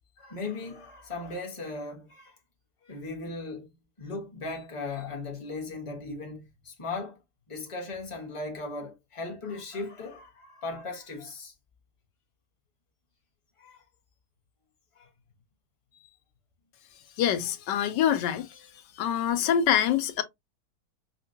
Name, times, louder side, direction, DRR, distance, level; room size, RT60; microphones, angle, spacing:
voice 1, 0.2-2.3 2.8-7.2 7.5-11.5 13.6-13.8 14.9-15.1 15.9-16.2, left 3 dB, 20° left, 1.1 m, -38 dB
voice 2, 17.2-18.5 19.0-20.2, left 9 dB, 90° left, 1.3 m, -25 dB
5.5 x 2.2 x 2.7 m
omnidirectional pair, 1.8 m